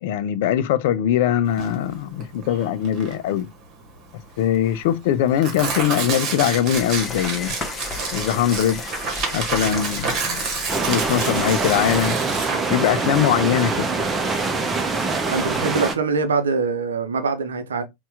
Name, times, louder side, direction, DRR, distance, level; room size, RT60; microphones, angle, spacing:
voice 1, 0.0-3.5 4.4-7.6 8.1-8.8 9.3-10.5 10.9-12.2 12.7-13.9, left 10 dB, 50° left, 0.4 m, -21 dB
Tearing, 1.5-15.7, right 5 dB, 35° right, 1.3 m, -30 dB
sound 1, 6.7-12.1, left 3 dB, 15° left, 1.0 m, -34 dB
sound 2, 10.7-16.0, right 3 dB, 15° right, 0.8 m, -24 dB
voice 2, 15.2-17.8, right 4 dB, 65° right, 0.7 m, -23 dB
4.2 x 2.4 x 3.4 m
figure-of-eight pair, 90°, 0 cm